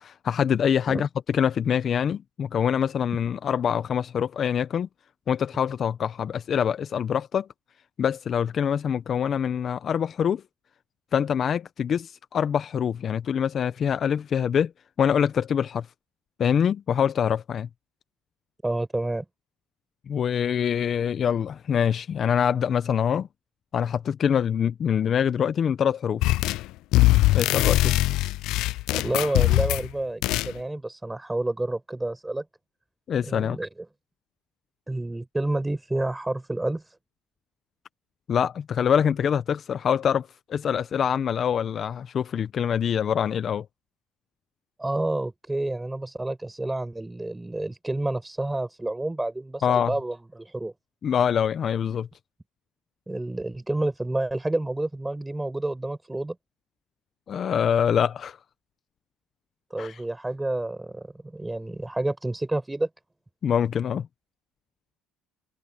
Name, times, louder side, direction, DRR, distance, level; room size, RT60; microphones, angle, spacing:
voice 1, 0.0-4.9 5.3-7.5 8.0-10.4 11.1-14.7 15.0-15.9 16.4-17.7 20.1-23.3 23.7-26.2 27.3-28.0 33.1-33.6 38.3-43.7 49.6-49.9 51.0-52.1 57.3-58.4 59.8-60.0 63.4-64.1, left 8 dB, 40° left, 0.7 m, -25 dB
voice 2, 18.6-19.2 28.9-32.4 33.3-33.7 34.9-36.9 44.8-50.7 53.1-56.4 59.7-61.1 61.3-62.9, right 2 dB, 10° right, 5.7 m, -29 dB
sound 1, 26.2-26.7 26.9-29.9 30.2-30.5, left 18 dB, 70° left, 0.3 m, -21 dB
cardioid pair, 115°, 0 cm